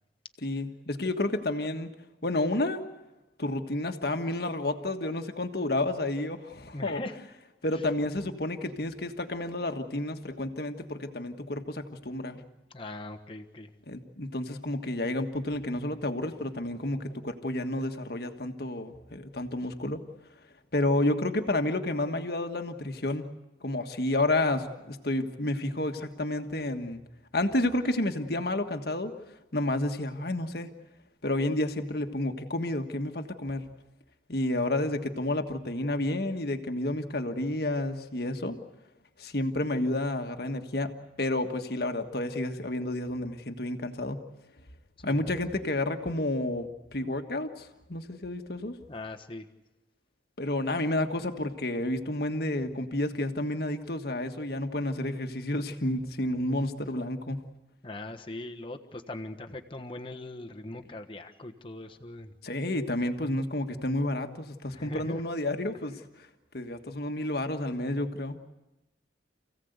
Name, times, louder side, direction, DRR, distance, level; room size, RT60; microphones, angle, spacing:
voice 1, 0.4-1.9 2.2-2.8 3.4-7.0 7.6-12.4 13.9-20.0 20.7-23.3 23.6-27.0 27.3-29.1 29.5-30.7 31.2-33.7 34.3-38.6 39.2-40.9 41.2-44.2 45.0-48.8 50.4-57.4 62.4-66.0 66.5-68.4, left 1 dB, 55° left, 6 dB, 1.6 m, -30 dB
voice 2, 6.7-7.2 7.7-7.8 12.7-13.7 45.0-45.3 48.9-49.5 57.8-62.3 64.7-65.2, left 2 dB, 30° left, 5 dB, 1.3 m, -40 dB
28.5 x 16.5 x 8.1 m, 1.0 s
head